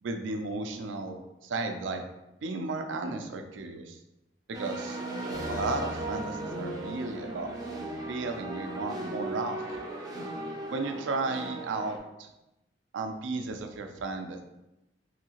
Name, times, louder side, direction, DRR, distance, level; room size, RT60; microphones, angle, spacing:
voice 1, 0.0-2.0 2.4-4.0 4.5-5.0 5.5-7.5 8.1-9.6 10.7-12.3 12.9-14.4, right 3 dB, 85° right, 6 dB, 0.4 m, -34 dB
sound 1, 4.5-12.0, right 1 dB, 20° right, 0.4 m, -37 dB
sound 2, 5.3-9.1, left 1 dB, 75° left, 1.2 m, -45 dB
3.2 x 2.7 x 2.9 m, 0.93 s
head